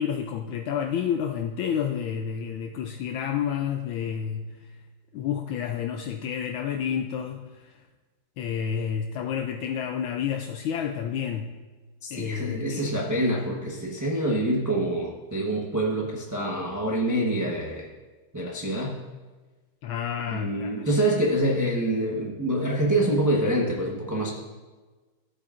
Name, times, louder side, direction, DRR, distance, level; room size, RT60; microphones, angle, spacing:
voice 1, 0.0-4.7 5.1-7.8 8.4-11.5 12.1-12.9 19.8-20.9, left 8 dB, 75° left, 4 dB, 1.3 m, -30 dB
voice 2, 12.0-17.9 18.3-19.0 20.3-24.3, right 1 dB, 25° right, -3 dB, 0.3 m, -26 dB
14.0 x 8.8 x 2.5 m, 1.3 s
omnidirectional pair, 2.4 m